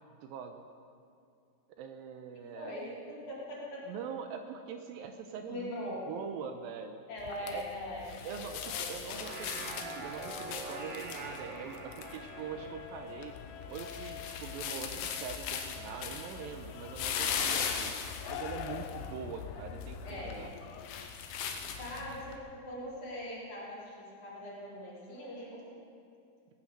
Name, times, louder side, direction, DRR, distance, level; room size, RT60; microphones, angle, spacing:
voice 1, 0.1-0.7 1.8-2.8 3.9-7.0 7.4-7.7 8.2-13.4 13.7-18.0 18.3-20.5, right 7 dB, 80° right, 6 dB, 2.3 m, -43 dB
voice 2, 2.3-3.8 5.5-6.0 7.1-8.0 8.4-9.2 20.0-20.4 21.8-25.8, left 1 dB, 50° left, -7 dB, 5.1 m, -42 dB
sound 1, 7.2-22.4, left 7 dB, 75° left, 2.5 m, -39 dB
sound 2, 8.9-14.5, right 2 dB, 60° right, 3.4 m, -45 dB
sound 3, 12.0-21.1, left 10 dB, 90° left, 1.9 m, -47 dB
18.0 x 9.3 x 6.7 m, 2.4 s
omnidirectional pair, 4.5 m